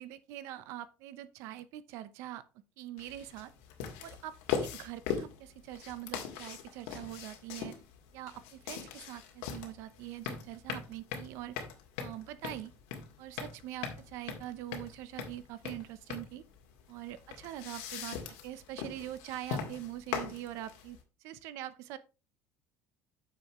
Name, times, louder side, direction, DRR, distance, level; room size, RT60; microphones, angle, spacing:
voice 1, 0.0-2.4 2.8-3.5 4.0-7.7 8.1-11.6 12.0-12.7 13.2-16.4 16.9-18.2 18.4-21.0 21.2-22.0, right 13 dB, 60° right, 0.8 m, -43 dB
sound 1, 3.0-21.0, left 7 dB, 80° left, 2.0 m, -40 dB
9.4 x 6.9 x 3.1 m
cardioid pair, 170°, 5 cm